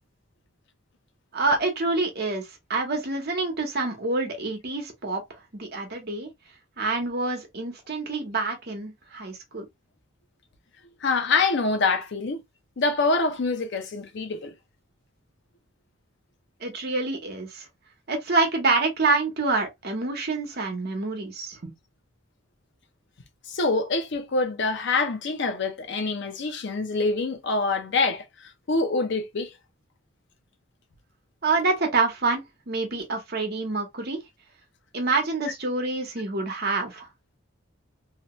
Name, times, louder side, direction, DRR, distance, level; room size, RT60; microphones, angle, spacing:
voice 1, 1.3-5.2 5.5-6.3 6.8-9.7 16.6-17.7 18.1-21.7 31.4-34.2 34.9-37.1, right 3 dB, 50° right, 0.9 m, -27 dB
voice 2, 11.0-12.4 12.8-14.5 23.5-28.2 28.7-29.5, left 3 dB, 55° left, 0.6 m, -25 dB
2.8 x 2.2 x 2.9 m
head